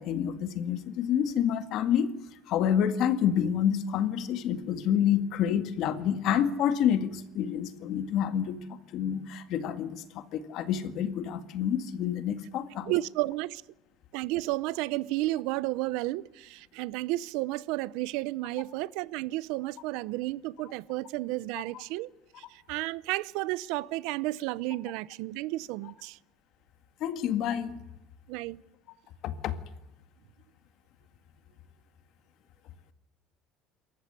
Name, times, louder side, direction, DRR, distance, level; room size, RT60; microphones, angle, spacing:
voice 1, 0.0-2.1 2.5-12.9 27.0-27.8 29.2-29.5, left 9 dB, 50° left, 1.9 m, -28 dB
voice 2, 12.9-13.6 14.1-22.1 22.4-26.2 28.3-28.6, right 18 dB, 75° right, 0.7 m, -32 dB
27.5 x 14.5 x 9.7 m
cardioid pair, 165°, 0 cm